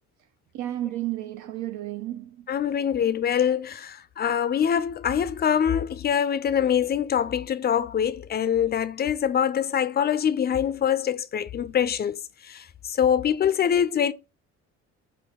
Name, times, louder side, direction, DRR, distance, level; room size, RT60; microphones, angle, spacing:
voice 1, 0.5-2.6, right 14 dB, 75° right, 0.5 m, -32 dB
voice 2, 2.5-14.1, left 8 dB, 35° left, 0.4 m, -24 dB
3.6 x 2.2 x 3.5 m
cardioid pair, 90°, 30 cm